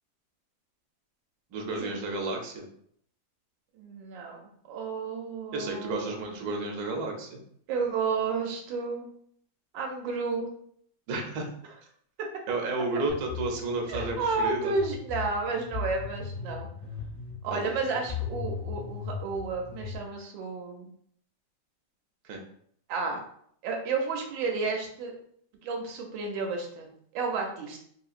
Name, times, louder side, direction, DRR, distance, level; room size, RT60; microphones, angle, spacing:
voice 1, 1.5-2.7 5.5-7.4 11.1-11.5 12.5-14.7 17.5-17.8 22.2-22.4, right 2 dB, 65° right, 1 dB, 1.0 m, -32 dB
voice 2, 3.7-6.4 7.7-9.1 9.7-10.5 13.9-16.7 17.4-20.9 22.9-23.2 23.6-25.1 25.6-27.8, right 4 dB, 80° right, 2 dB, 1.3 m, -32 dB
sound 1, 13.1-20.0, left 6 dB, 5° left, 0.9 m, -38 dB
3.4 x 2.8 x 2.4 m, 0.65 s
omnidirectional pair, 2.1 m